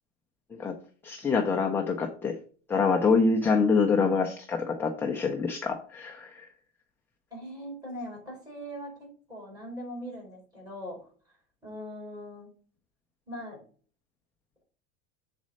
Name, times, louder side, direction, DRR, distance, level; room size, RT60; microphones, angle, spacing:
voice 1, 1.0-2.4 2.7-6.5, left 4 dB, 5° left, 2 dB, 0.4 m, -25 dB
voice 2, 7.3-11.0 11.6-12.5 13.3-13.6, equal, 10° right, -2 dB, 4.2 m, -40 dB
7.2 x 4.1 x 6.2 m, 0.43 s
supercardioid pair, 165°, 34 cm